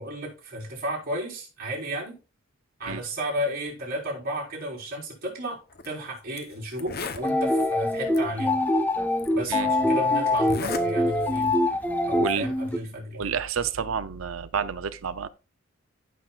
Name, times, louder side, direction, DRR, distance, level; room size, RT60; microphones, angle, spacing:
voice 1, 0.0-2.1 2.8-8.6 9.3-11.7 12.1-13.2, equal, 45° right, 4.3 m, -33 dB
Zipper (clothing), 5.7-5.9 6.4-6.5 6.7-7.3 8.1-8.2 9.2-9.3 10.4-10.9 11.2-11.5, left 4 dB, 50° left, 0.9 m, -34 dB
sound 1, 7.2-12.8, left 1 dB, 10° left, 0.9 m, -24 dB
voice 2, 12.1-12.5 13.1-15.3, right 6 dB, 85° right, 0.6 m, -29 dB
15.0 x 5.9 x 2.4 m
head